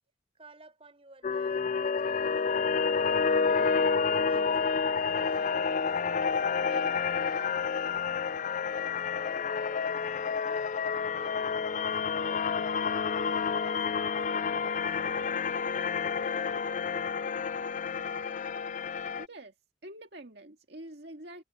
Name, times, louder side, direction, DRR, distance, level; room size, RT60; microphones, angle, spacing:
voice 1, 0.3-3.6 4.0-4.5 5.1-6.3 6.7-8.1 8.7-10.6 11.1-15.2 15.6-17.9, right 2 dB, 30° right, 5.1 m, -55 dB
sound 1, 1.2-19.3, left 5 dB, 40° left, 0.4 m, -29 dB
voice 2, 19.1-19.5 19.8-21.4, right 1 dB, 60° right, 2.2 m, -47 dB
head